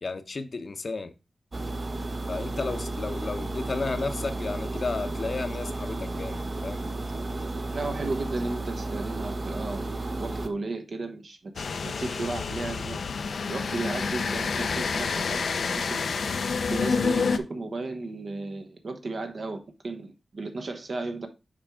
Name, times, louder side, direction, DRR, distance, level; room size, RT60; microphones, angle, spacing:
voice 1, 0.0-1.1 2.3-6.8, left 3 dB, 50° left, 0.7 m, -33 dB
sound 1, 1.5-10.5, right 2 dB, 40° right, 0.8 m, -33 dB
voice 2, 7.7-9.9 10.2-13.0 13.5-15.4 15.7-16.0 16.7-21.3, right 3 dB, 65° right, 1.1 m, -34 dB
sound 2, 11.6-17.4, left 5 dB, 85° left, 0.5 m, -28 dB
7.3 x 4.7 x 3.5 m
wide cardioid pair, 120°, 0 cm